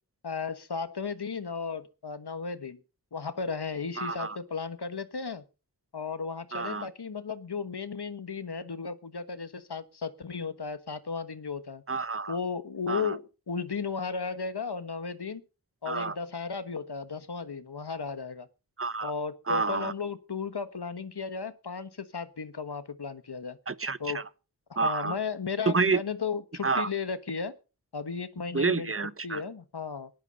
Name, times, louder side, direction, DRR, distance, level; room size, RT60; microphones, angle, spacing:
voice 1, 0.2-2.8 3.1-5.4 5.9-11.8 12.3-15.4 15.8-18.5 19.0-23.6 24.0-24.2 24.8-27.6 27.9-28.9 29.2-30.1, left 5 dB, 80° left, 1.4 m, -35 dB
voice 2, 4.0-4.4 6.5-6.9 11.9-12.4 12.9-13.1 15.9-16.1 18.8-19.1 19.5-19.9 23.7-24.2 24.8-25.1 25.7-26.0 26.6-26.9 28.5-29.4, right 4 dB, 35° right, 0.9 m, -29 dB
18.0 x 11.5 x 5.3 m
wide cardioid pair, 55°, 39 cm